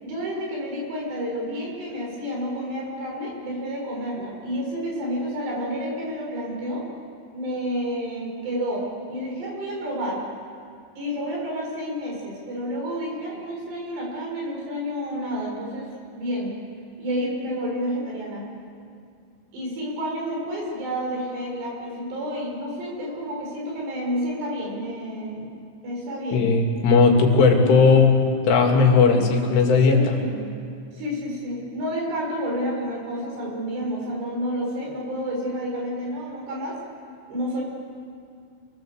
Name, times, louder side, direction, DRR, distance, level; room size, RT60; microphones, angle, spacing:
voice 1, 0.0-6.9 7.3-10.2 11.0-16.5 17.0-18.5 19.5-25.5 25.8-26.5 28.8-29.3 29.9-30.5 30.9-36.8 37.3-37.6, equal, 65° right, -2 dB, 8.1 m, -30 dB
voice 2, 26.3-28.1 28.5-30.2, left 4 dB, 85° left, 1 dB, 5.0 m, -17 dB
28.0 x 21.5 x 7.9 m, 2.4 s
omnidirectional pair, 5.4 m